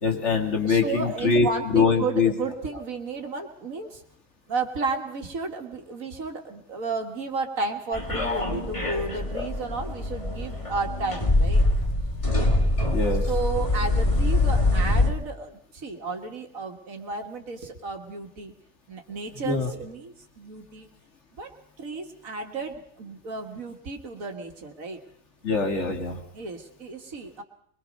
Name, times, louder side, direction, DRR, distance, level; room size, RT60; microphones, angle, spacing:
voice 1, 0.0-1.5 1.7-2.3 9.3-9.5 12.9-13.2 19.5-19.7 25.4-26.2, left 4 dB, 60° left, 2 dB, 2.5 m, -23 dB
voice 2, 0.6-4.0 4.5-11.7 13.1-18.5 18.9-20.9 21.3-25.0 26.3-27.4, right 3 dB, 85° right, 3 dB, 2.2 m, -33 dB
sound 1, 7.9-15.1, left 2 dB, 25° left, 1.9 m, -24 dB
23.0 x 22.0 x 5.3 m, 0.66 s
omnidirectional pair, 1.4 m